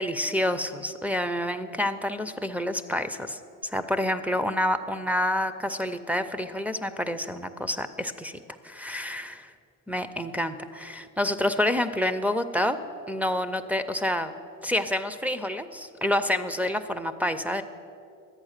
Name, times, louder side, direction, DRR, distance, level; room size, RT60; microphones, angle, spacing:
voice 1, 0.0-9.5 9.9-12.8 13.1-14.3 14.6-17.6, left 1 dB, 5° right, 6 dB, 0.5 m, -28 dB
11.5 x 8.4 x 6.5 m, 2.5 s
supercardioid pair, 75°, 46 cm